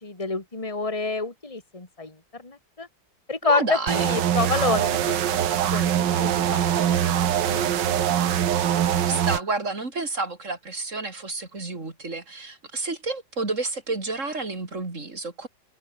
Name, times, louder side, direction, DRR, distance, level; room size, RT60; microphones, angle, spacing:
voice 1, 0.0-2.9 3.3-8.0, left 3 dB, 15° left, 3.1 m, -29 dB
voice 2, 3.4-4.1 9.1-15.5, right 3 dB, 40° right, 4.2 m, -30 dB
sound 1, 3.9-9.4, right 10 dB, 70° right, 1.7 m, -23 dB
omnidirectional pair, 2.1 m